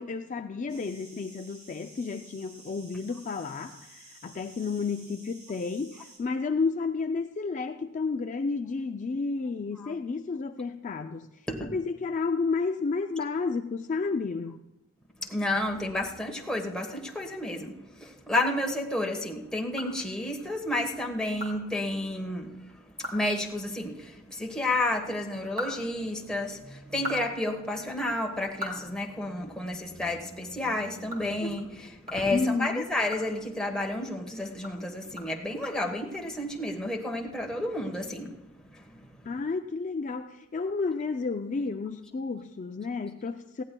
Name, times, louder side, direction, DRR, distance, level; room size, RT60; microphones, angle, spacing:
voice 1, 0.0-11.3 11.7-14.6 32.3-32.9 39.2-43.6, left 4 dB, 35° left, 7 dB, 0.4 m, -31 dB
sound 1, 0.7-6.2, right 2 dB, 85° right, 4.7 m, -52 dB
voice 2, 15.2-22.6 23.0-38.4 38.7-39.0, left 1 dB, 5° left, 0 dB, 1.2 m, -31 dB
sound 2, 19.7-20.5 20.9-21.0 21.4-21.5 21.9-22.0 22.4-22.5 22.9-23.3 23.6-23.7 25.2-26.5 26.8-29.7 30.1-30.2 30.6-34.2 34.5-36.2, left 1 dB, 45° right, 3.2 m, -41 dB
19.5 x 15.5 x 2.2 m, 1.0 s
head